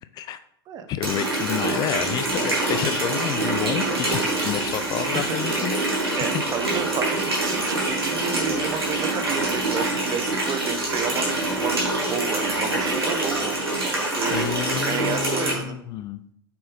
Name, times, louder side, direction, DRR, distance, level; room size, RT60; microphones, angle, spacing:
voice 1, 0.9-5.8 14.3-16.2, left 11 dB, 30° left, 13 dB, 0.4 m, -29 dB
Water tap faucet, 1.0-15.5, right 2 dB, 90° right, 2.5 m, -25 dB
voice 2, 6.2-11.8 12.1-15.8, right 7 dB, 30° right, 8 dB, 0.9 m, -31 dB
6.8 x 5.4 x 3.5 m, 0.71 s
hypercardioid pair, 95°, 12 cm